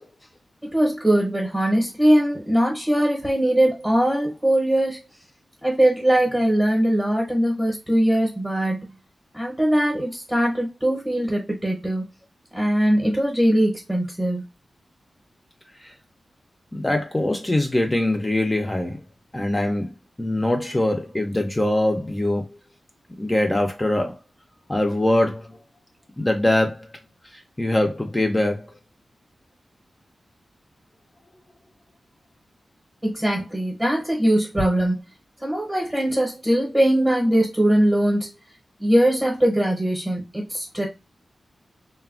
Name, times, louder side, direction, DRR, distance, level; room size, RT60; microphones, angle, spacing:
voice 1, 0.7-5.0 5.6-8.9 9.3-12.0 12.5-14.4 33.0-35.0 35.4-38.3 38.8-40.9, right 1 dB, 10° right, 0.7 m, -21 dB
voice 2, 16.7-19.0 19.3-19.9 20.2-22.6 23.2-24.2 24.7-25.6 26.2-26.9 27.3-28.7, left 1 dB, 15° left, 0.4 m, -23 dB
3.2 x 2.1 x 2.4 m
wide cardioid pair, 145°, 0 cm